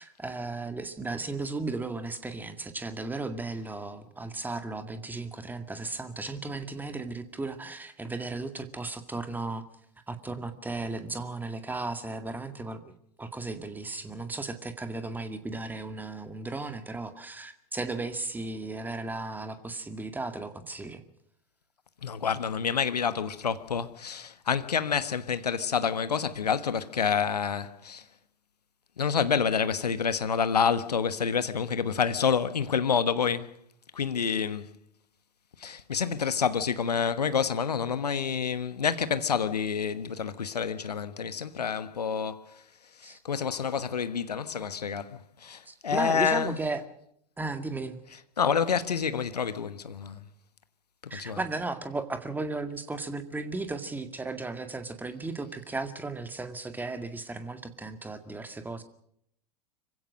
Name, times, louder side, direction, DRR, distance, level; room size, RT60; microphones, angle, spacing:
voice 1, 0.0-9.7 10.1-21.0 43.0-43.2 45.7-46.8 47.4-48.0 51.1-58.8, right 3 dB, 10° right, 2.0 m, -35 dB
voice 2, 22.0-28.0 29.0-33.5 33.9-34.7 35.6-42.4 43.0-46.6 48.4-50.2 51.1-51.4, left 6 dB, 75° left, 1.3 m, -28 dB
25.5 x 16.0 x 6.4 m
figure-of-eight pair, 85°, 21 cm